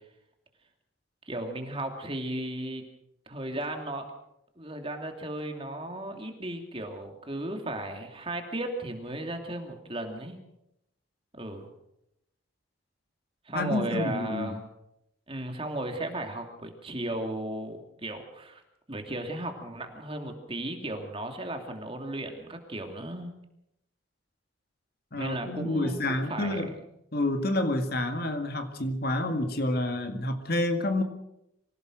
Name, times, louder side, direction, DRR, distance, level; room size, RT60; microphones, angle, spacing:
voice 1, 1.3-2.8 3.3-4.1 4.6-10.4 11.3-11.7 13.5-14.7 15.3-18.6 18.9-23.3 25.2-26.6, right 1 dB, 25° right, 5 dB, 2.7 m, -35 dB
voice 2, 13.5-14.6 25.1-26.7 27.1-31.0, left 1 dB, 50° left, 7 dB, 2.0 m, -29 dB
25.0 x 16.5 x 6.4 m, 0.81 s
head